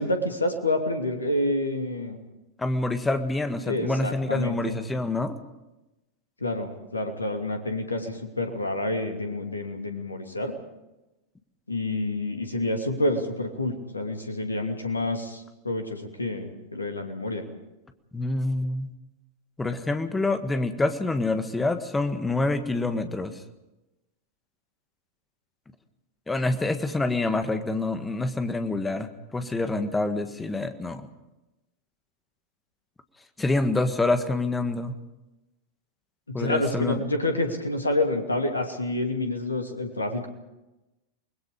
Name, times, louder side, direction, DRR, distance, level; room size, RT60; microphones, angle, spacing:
voice 1, 0.0-2.2 3.7-4.7 6.4-10.5 11.7-17.4 36.3-40.3, left 1 dB, 80° left, 5 dB, 2.7 m, -28 dB
voice 2, 2.6-5.4 18.1-18.9 19.6-23.4 26.3-31.1 33.4-34.9 36.3-37.0, left 2 dB, 10° left, 8 dB, 1.7 m, -27 dB
29.0 x 21.0 x 5.2 m, 1.0 s
figure-of-eight pair, 90°, 0 cm